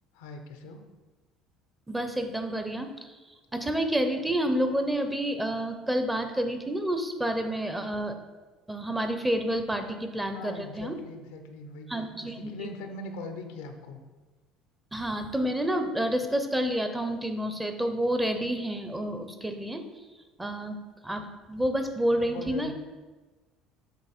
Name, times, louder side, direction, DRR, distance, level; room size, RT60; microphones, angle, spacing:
voice 1, 0.1-0.8 10.3-14.0 22.1-22.7, left 3 dB, 90° left, 6 dB, 0.6 m, -41 dB
voice 2, 1.9-8.2 8.7-11.0 11.9-12.5 14.9-20.0 20.4-22.7, right 1 dB, 10° right, 7 dB, 0.6 m, -29 dB
7.3 x 3.0 x 4.3 m, 1.3 s
supercardioid pair, 85°, 0 cm